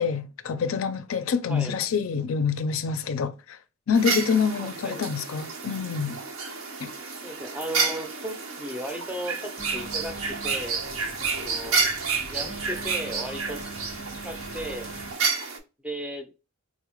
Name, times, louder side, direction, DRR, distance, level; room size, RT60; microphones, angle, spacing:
voice 1, 0.0-3.6 3.9-6.2 6.8-6.9, left 6 dB, 75° left, 0.4 m, -26 dB
sound 1, 3.9-15.6, right 4 dB, 85° right, 0.9 m, -30 dB
voice 2, 7.2-10.8 11.3-11.8 12.3-13.6 14.2-14.9 15.8-16.3, equal, 5° right, 0.4 m, -35 dB
Telephone, 9.6-15.1, right 2 dB, 30° left, 0.7 m, -42 dB
3.8 x 2.0 x 2.9 m
head